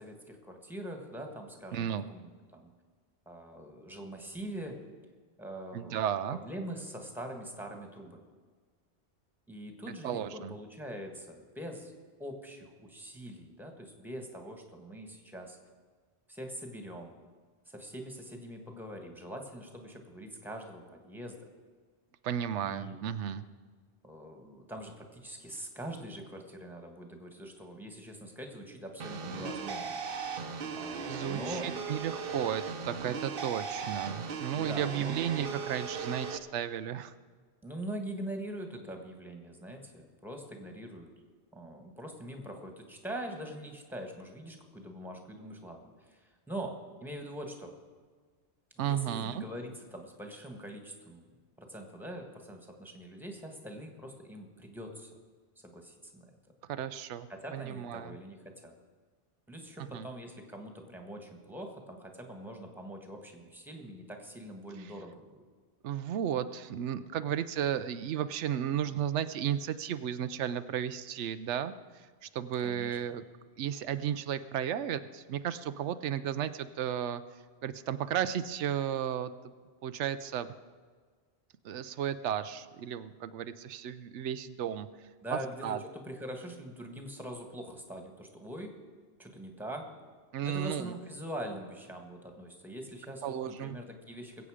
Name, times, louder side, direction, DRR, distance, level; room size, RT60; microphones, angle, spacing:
voice 1, 0.0-2.7 3.2-4.8 5.4-6.0 6.3-8.2 9.5-11.9 12.2-15.6 16.3-17.2 17.7-21.5 22.6-23.0 24.0-30.0 30.7-31.7 34.6-35.1 37.6-41.1 41.5-47.7 48.7-51.3 51.6-55.1 55.6-56.3 57.3-58.7 59.5-65.4 72.6-73.0 85.2-88.7 89.2-89.9 90.4-94.5, right 1 dB, ahead, 3 dB, 1.5 m, -43 dB
voice 2, 1.7-2.1 5.7-6.4 9.9-10.5 22.2-23.4 31.1-37.1 48.8-49.4 56.7-58.2 59.8-60.1 65.8-73.2 73.6-77.2 77.6-79.3 79.8-80.5 81.6-84.9 85.3-85.8 90.3-90.9 93.2-93.8, right 9 dB, 85° right, 12 dB, 0.9 m, -34 dB
sound 1, 29.0-36.4, right 5 dB, 55° right, 1.0 m, -38 dB
21.0 x 8.2 x 5.0 m, 1.5 s
omnidirectional pair, 1.2 m